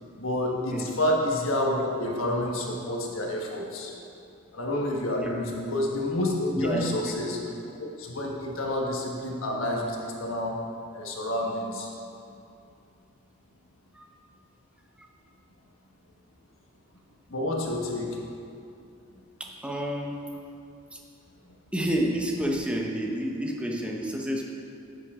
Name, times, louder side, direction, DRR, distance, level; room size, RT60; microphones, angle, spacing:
voice 1, 0.2-3.9 4.5-7.4 7.8-10.6 10.9-11.9 17.3-18.2, left 1 dB, 85° left, -1 dB, 1.3 m, -29 dB
voice 2, 5.2-5.6 6.6-7.2 13.9-14.1 15.0-15.1 19.4-20.1 20.9-21.0 21.7-24.4, right 1 dB, 5° right, -1 dB, 0.9 m, -30 dB
9.8 x 8.3 x 3.6 m, 2.6 s
head